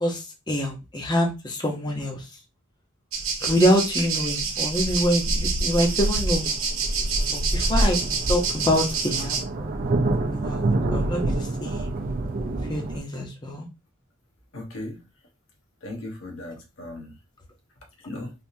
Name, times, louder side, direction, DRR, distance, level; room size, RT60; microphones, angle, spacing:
voice 1, 0.0-2.2 3.4-6.4 7.3-8.0 8.3-9.5 10.3-11.9 12.7-13.7, equal, 20° left, 1 dB, 0.8 m, -25 dB
sound 1, 3.1-9.4, right 3 dB, 75° right, 0.8 m, -26 dB
sound 2, 5.9-6.0 6.3-13.0, right 2 dB, 45° right, 0.5 m, -28 dB
voice 2, 14.5-15.0 15.8-17.1 18.0-18.3, left 1 dB, 70° left, 1 dB, 1.1 m, -36 dB
3.4 x 2.7 x 2.6 m, 0.26 s
head